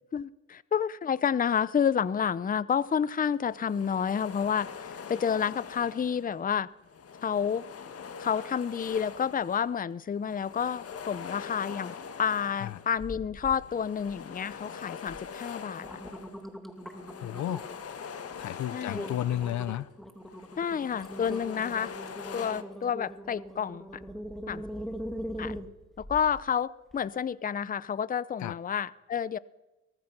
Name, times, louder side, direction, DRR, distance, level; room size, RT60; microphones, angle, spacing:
voice 1, 0.1-6.7 7.2-7.7 8.2-15.9 18.7-19.1 20.6-21.9 22.3-24.0 24.5-24.6 25.4-25.6 26.0-29.4, left 7 dB, 30° left, 0.6 m, -30 dB
sound 1, 2.7-2.9 3.4-6.4 6.8-9.8 10.1-13.1 13.5-19.9 20.2-22.6, left 6 dB, 50° left, 1.7 m, -43 dB
sound 2, 13.0-13.6 14.0-14.5 15.1-15.2 15.6-17.8 18.3-18.5 18.9-26.4 26.9-27.0, equal, ahead, 2.6 m, -41 dB
voice 2, 17.2-17.6 18.4-19.9 28.4-28.6, left 12 dB, 70° left, 0.8 m, -32 dB
23.5 x 18.5 x 6.1 m
cardioid pair, 90°, 30 cm